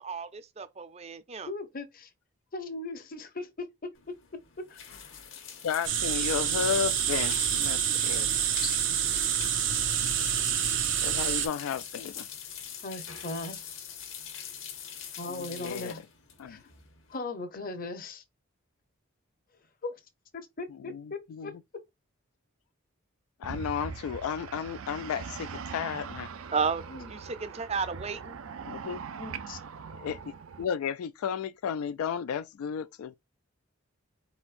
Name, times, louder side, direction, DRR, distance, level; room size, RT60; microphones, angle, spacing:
voice 1, 0.0-1.5 26.5-28.4, right 5 dB, 30° right, 0.5 m, -33 dB
voice 2, 1.5-2.1 2.5-3.9 4.6-4.8 8.6-8.8 12.8-13.7 15.2-16.0 16.5-16.6 17.1-18.2 19.8-20.0 20.3-21.8 26.9-27.1 29.2-29.6, left 3 dB, 40° left, 0.8 m, -38 dB
sound 1, 3.9-17.2, left 8 dB, 65° left, 1.2 m, -42 dB
voice 3, 5.6-8.3 11.0-12.3 15.3-15.9 16.4-16.6 20.9-21.5 23.4-26.3 28.7-29.0 30.0-30.2 30.6-33.1, left 7 dB, 85° left, 0.3 m, -33 dB
sound 2, 5.8-11.5, right 9 dB, 60° right, 0.9 m, -27 dB
sound 3, 23.4-30.6, right 6 dB, 75° right, 0.5 m, -41 dB
4.6 x 4.2 x 2.5 m
head